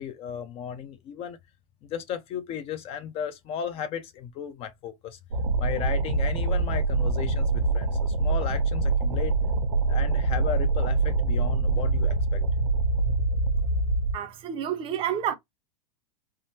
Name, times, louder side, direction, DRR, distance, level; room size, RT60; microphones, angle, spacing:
voice 1, 0.0-1.4 1.8-5.2 5.6-9.4 9.9-12.4, left 8 dB, 30° left, 0.5 m, -35 dB
sound 1, 5.3-14.1, right 3 dB, 90° right, 0.7 m, -24 dB
voice 2, 14.1-15.3, right 9 dB, 30° right, 0.6 m, -29 dB
3.5 x 2.0 x 2.7 m
hypercardioid pair, 130°, 18 cm